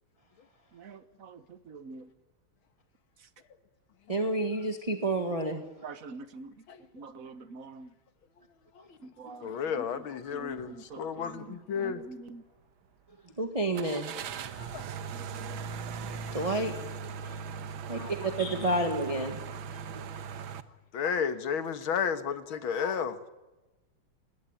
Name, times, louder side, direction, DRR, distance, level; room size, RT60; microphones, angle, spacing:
voice 1, 0.7-2.1 5.8-6.5 6.9-7.9 9.0-9.9 10.3-12.4 15.1-15.6, right 4 dB, 50° right, 1.4 m, -46 dB
voice 2, 4.1-5.6 13.4-14.1 16.0-17.4 17.9-18.0 18.4-19.4 20.2-20.3, right 2 dB, 20° right, 1.6 m, -30 dB
voice 3, 9.4-12.0 14.5-14.8 20.9-23.2, left 7 dB, 85° left, 2.3 m, -32 dB
sound 1, 10.5-10.7 11.2-11.3 13.7-20.6, right 6 dB, 85° right, 1.9 m, -39 dB
26.0 x 20.5 x 9.0 m
omnidirectional pair, 2.2 m